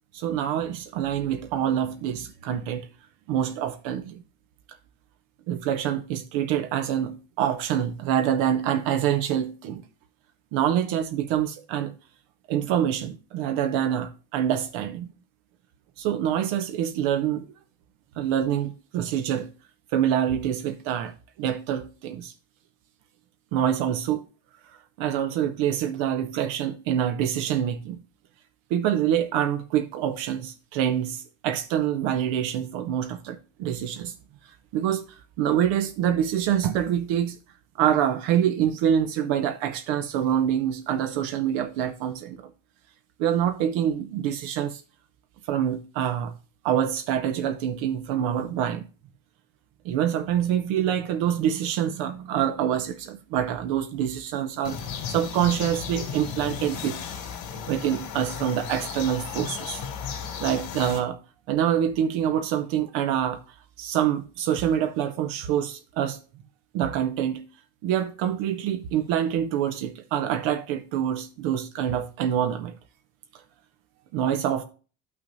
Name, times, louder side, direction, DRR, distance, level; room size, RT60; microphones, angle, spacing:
voice 1, 0.1-2.9 3.3-4.2 5.5-9.8 10.5-11.9 12.5-15.1 16.0-17.5 18.2-19.5 19.9-22.3 23.5-24.2 25.0-28.0 28.7-34.1 34.7-35.0 35.4-37.4 37.8-42.5 43.2-44.8 45.5-46.3 46.6-48.9 49.8-57.0 57.7-59.8 60.4-61.2 61.5-63.4 63.8-66.2 66.7-67.4 67.8-72.7 74.1-74.6, right 10 dB, 80° right, 0.8 m, -26 dB
sound 1, 54.6-61.0, left 7 dB, 90° left, 2.6 m, -35 dB
11.5 x 6.0 x 2.6 m
cardioid pair, 165°, 46 cm